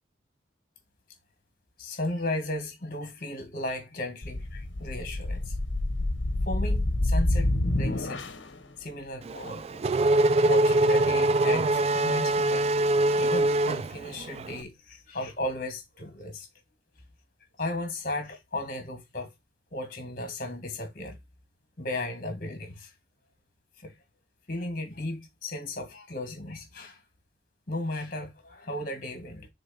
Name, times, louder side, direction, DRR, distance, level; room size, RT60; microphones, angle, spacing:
voice 1, 1.8-5.5 6.4-8.2 8.8-12.7 13.2-16.5 17.6-19.3 19.7-21.2 21.8-22.9 23.8-23.9 24.5-27.0 27.7-29.5, left 1 dB, 50° left, 2.2 m, -35 dB
sound 1, 4.2-8.5, left 1 dB, 80° left, 1.2 m, -27 dB
Race car auto racing / Accelerating revving vroom, 9.3-14.5, right 2 dB, 35° right, 0.3 m, -23 dB
6.6 x 4.0 x 4.3 m
head